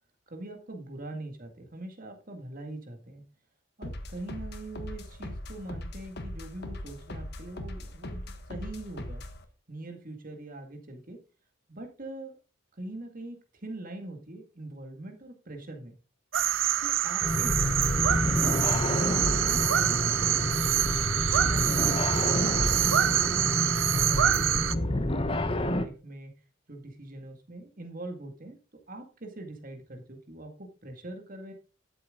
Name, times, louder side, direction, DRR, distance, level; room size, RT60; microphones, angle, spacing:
voice 1, 0.3-3.2 3.8-8.2 8.5-9.2 9.7-11.2 11.7-12.4 12.8-15.9 16.8-20.9 21.4-23.5 23.9-26.3 26.7-28.6 28.9-31.5, right 2 dB, 40° right, 4 dB, 2.1 m, -43 dB
sound 1, 3.8-9.4, left 1 dB, 50° left, 1.3 m, -40 dB
sound 2, 16.3-24.7, right 11 dB, 65° right, 0.5 m, -26 dB
sound 3, 17.2-25.9, left 1 dB, 25° left, 0.8 m, -28 dB
12.5 x 7.6 x 3.8 m, 0.34 s
head